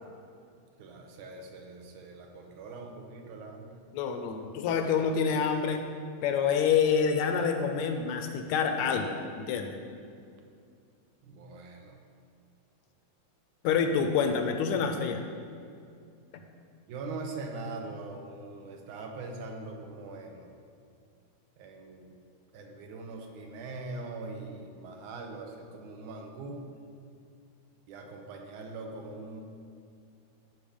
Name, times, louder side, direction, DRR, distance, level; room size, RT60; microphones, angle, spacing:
voice 1, 0.8-3.8 11.2-12.0 16.9-20.5 21.6-22.1 22.5-26.7 27.9-29.4, right 3 dB, 75° right, 3 dB, 2.5 m, -42 dB
voice 2, 3.9-5.8 6.2-9.8 13.6-15.2, left 6 dB, 75° left, 6 dB, 1.8 m, -27 dB
13.0 x 6.0 x 5.1 m, 2.3 s
omnidirectional pair, 3.6 m